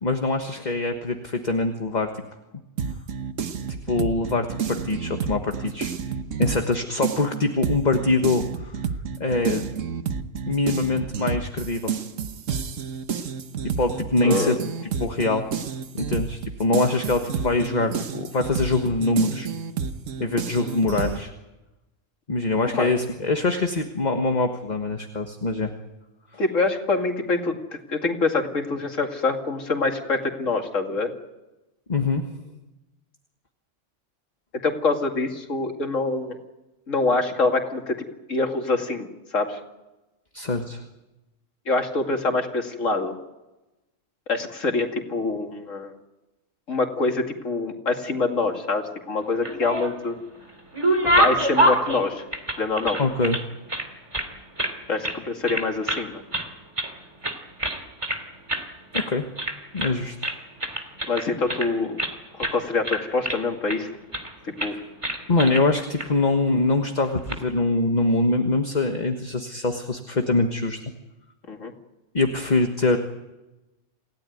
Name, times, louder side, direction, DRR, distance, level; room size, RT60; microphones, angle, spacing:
voice 1, 0.0-2.2 3.9-5.9 6.4-8.7 9.2-9.7 10.4-11.9 13.6-14.6 15.0-15.5 15.9-19.5 20.2-21.3 22.3-25.7 26.3-26.4 31.9-32.2 40.3-40.8 53.0-53.4 58.9-59.2 59.7-60.2 64.7-64.8 65.3-70.8 72.1-73.0, left 3 dB, 35° left, 5 dB, 1.6 m, -24 dB
sound 1, 2.8-6.7 7.0-21.2, right 6 dB, 80° right, 1.5 m, -30 dB
voice 2, 14.2-14.5 22.7-22.9 26.4-27.5 27.9-31.1 34.6-36.4 36.9-38.0 38.3-39.1 39.3-39.6 41.7-43.1 44.3-45.9 46.7-50.2 51.1-52.2 52.6-53.0 54.9-56.2 61.1-62.0 62.4-63.9 64.6-64.8 71.5-71.7, left 3 dB, 80° left, 3 dB, 2.8 m, -25 dB
sound 2, 49.3-50.1 50.5-53.4 53.7-54.8 55.0-55.2 55.5-56.1 56.3-56.9 57.2-58.2 58.5-58.7 58.9-59.1 59.4-60.0 60.2-62.1 62.4-62.6 62.8-63.8 64.1-64.3 64.6-64.7 65.0-65.6 66.0-66.1 67.0-67.4, right 1 dB, 25° right, 2.7 m, -25 dB
28.0 x 16.5 x 9.3 m, 1.0 s
omnidirectional pair, 1.3 m